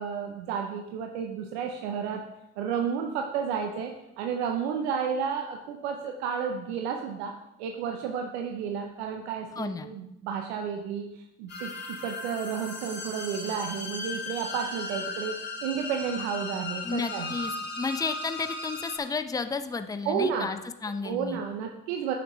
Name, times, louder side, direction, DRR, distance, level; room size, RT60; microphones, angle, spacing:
voice 1, 0.0-2.2 2.6-7.3 7.6-17.4 20.1-20.5 21.0-22.1, right 7 dB, 85° right, 3 dB, 0.6 m, -32 dB
voice 2, 9.6-9.9 16.8-21.4, left 4 dB, 10° left, 10 dB, 0.5 m, -32 dB
sound 1, 11.5-19.0, left 3 dB, 35° left, 2.4 m, -37 dB
9.2 x 5.9 x 3.1 m, 0.91 s
hypercardioid pair, 55°, 32 cm